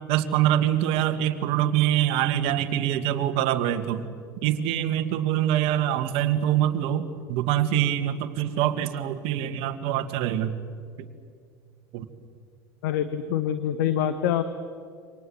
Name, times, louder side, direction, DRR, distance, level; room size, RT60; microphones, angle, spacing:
voice 1, 0.1-4.0 4.4-10.6 11.9-12.0, right 11 dB, 50° right, 9 dB, 2.1 m, -24 dB
voice 2, 12.8-14.4, left 10 dB, 60° left, 11 dB, 1.3 m, -25 dB
28.5 x 25.5 x 7.9 m, 2.2 s
figure-of-eight pair, 75°, 12 cm